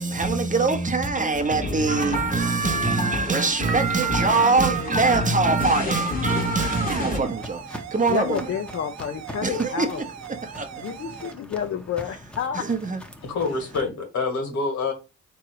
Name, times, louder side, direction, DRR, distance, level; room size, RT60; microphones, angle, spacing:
voice 1, 0.0-8.5 9.4-10.1 10.4-10.7 12.5-13.0, right 4 dB, 25° right, 0.8 m, -23 dB
sound 1, 1.3-7.2, left 3 dB, 30° left, 1.0 m, -30 dB
sound 2, 3.3-11.3, right 9 dB, 65° right, 0.6 m, -40 dB
Walk footsteps, 5.3-13.8, equal, 5° left, 0.8 m, -43 dB
voice 2, 8.1-10.0 10.8-12.7, left 8 dB, 50° left, 0.6 m, -30 dB
voice 3, 13.2-14.9, left 4 dB, 65° left, 1.8 m, -26 dB
3.6 x 3.1 x 4.6 m
cardioid pair, 90°, 30 cm